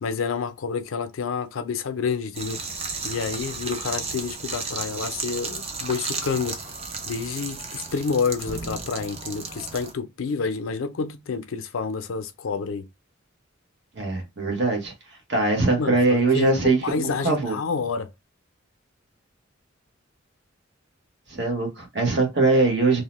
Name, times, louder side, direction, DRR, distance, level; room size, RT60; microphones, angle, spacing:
voice 1, 0.0-2.6 3.0-6.7 7.1-12.9 15.6-18.1, left 5 dB, 85° left, 0.5 m, -29 dB
sound 1, 2.3-9.9, right 4 dB, 30° right, 0.4 m, -34 dB
voice 2, 13.9-14.9 15.3-17.6 21.3-23.0, right 3 dB, 60° right, 1.0 m, -22 dB
2.7 x 2.1 x 2.9 m
head